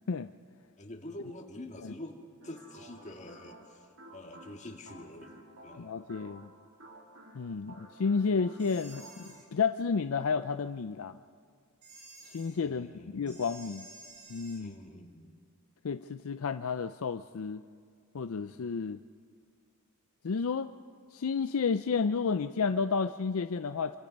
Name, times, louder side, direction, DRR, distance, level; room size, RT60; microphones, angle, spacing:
voice 1, 0.8-5.3 5.6-5.9 12.6-13.3 14.6-15.3, left 1 dB, 30° left, 2 dB, 2.0 m, -46 dB
sound 1, 2.4-9.4, right 1 dB, 65° right, 3.2 m, -54 dB
voice 2, 5.8-6.5 7.4-11.2 12.2-13.9 14.3-14.7 15.8-17.6 18.1-19.0 20.2-20.7 21.1-24.0, left 5 dB, 70° left, 11 dB, 0.5 m, -31 dB
sound 2, 8.6-9.4 11.8-12.5 13.3-14.6, right 2 dB, 35° right, 4.0 m, -52 dB
27.0 x 25.0 x 5.4 m, 2.1 s
head